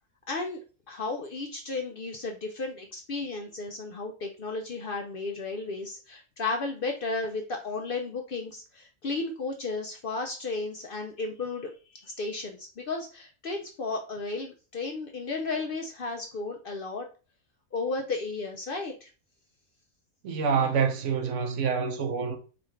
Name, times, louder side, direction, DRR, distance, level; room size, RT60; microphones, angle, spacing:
voice 1, 0.3-0.6 0.9-17.1 17.7-19.1, left 3 dB, 60° left, 0.6 m, -34 dB
voice 2, 20.2-22.4, right 6 dB, 70° right, 1.0 m, -27 dB
4.9 x 2.4 x 3.1 m
omnidirectional pair, 1.4 m